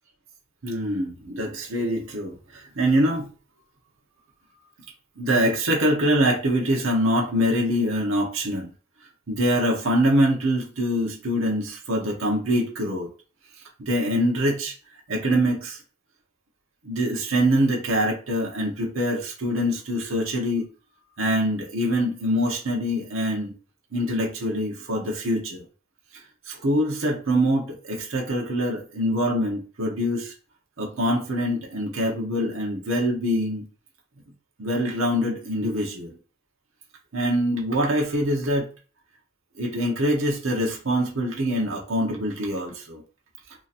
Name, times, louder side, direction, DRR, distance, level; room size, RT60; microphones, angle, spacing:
voice 1, 0.6-3.3 5.2-8.7 9.3-13.1 13.8-14.7 15.1-15.8 16.8-20.6 21.2-23.5 23.9-25.6 26.5-30.3 30.8-33.7 34.6-36.1 37.1-38.7 39.6-43.0, equal, 75° right, -1 dB, 1.0 m, -24 dB
3.0 x 2.5 x 4.1 m, 0.36 s
head